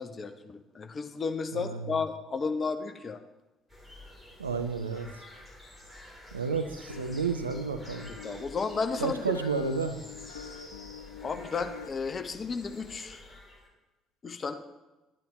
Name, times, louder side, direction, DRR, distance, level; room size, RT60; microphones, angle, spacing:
voice 1, 0.0-3.2 8.2-9.4 11.2-13.2 14.2-14.5, left 4 dB, 35° left, 8 dB, 0.8 m, -33 dB
voice 2, 1.5-2.0 4.4-5.2 6.3-8.1 9.0-10.0, right 5 dB, 80° right, 8 dB, 0.4 m, -31 dB
sound 1, 3.7-13.7, left 1 dB, ahead, 3.3 m, -49 dB
sound 2, 6.9-11.9, left 8 dB, 75° left, 0.3 m, -45 dB
12.0 x 8.9 x 3.1 m, 1.1 s
figure-of-eight pair, 50°, 0 cm